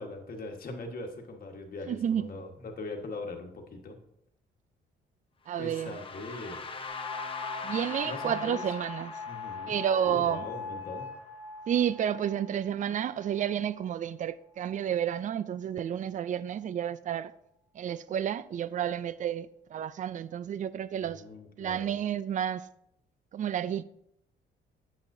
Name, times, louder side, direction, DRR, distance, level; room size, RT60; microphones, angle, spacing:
voice 1, 0.0-4.0 5.6-6.6 8.0-8.6 9.3-9.8 10.0-11.1 21.0-21.9, left 2 dB, 50° left, 1.4 m, -41 dB
voice 2, 1.9-2.3 5.5-6.0 7.6-9.2 9.7-10.5 11.7-17.3 17.7-21.2 21.6-22.7 23.3-23.8, right 9 dB, 40° right, 0.4 m, -31 dB
sound 1, 5.5-11.5, left 4 dB, 25° left, 0.9 m, -42 dB
sound 2, 6.9-13.8 14.6-15.2, left 4 dB, 5° right, 3.2 m, -42 dB
9.0 x 7.2 x 2.7 m
cardioid pair, 90°, 20 cm